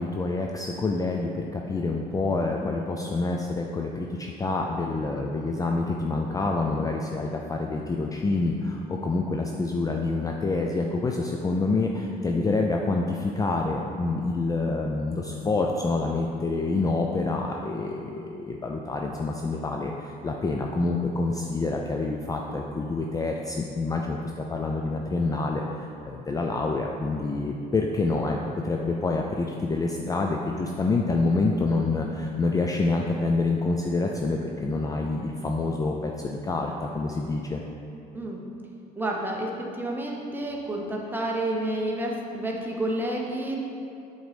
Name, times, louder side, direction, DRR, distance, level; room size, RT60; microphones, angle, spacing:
voice 1, 0.0-37.6, left 3 dB, 20° left, 1 dB, 0.4 m, -27 dB
voice 2, 39.0-43.6, right 1 dB, 10° right, -1 dB, 1.0 m, -30 dB
7.9 x 4.0 x 5.0 m, 2.6 s
cardioid pair, 110°, 17 cm